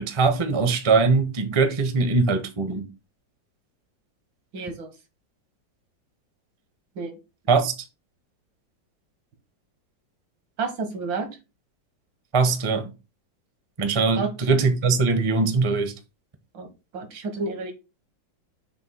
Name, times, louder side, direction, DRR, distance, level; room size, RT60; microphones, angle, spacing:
voice 1, 0.0-2.9 7.5-7.7 12.3-12.9 13.8-15.9, right 4 dB, 25° right, 0.6 m, -21 dB
voice 2, 4.5-4.9 7.0-7.1 10.6-11.3 14.2-14.3 16.5-16.7 16.9-17.7, right 4 dB, 80° right, 2.1 m, -30 dB
6.9 x 2.7 x 5.6 m
omnidirectional pair, 2.1 m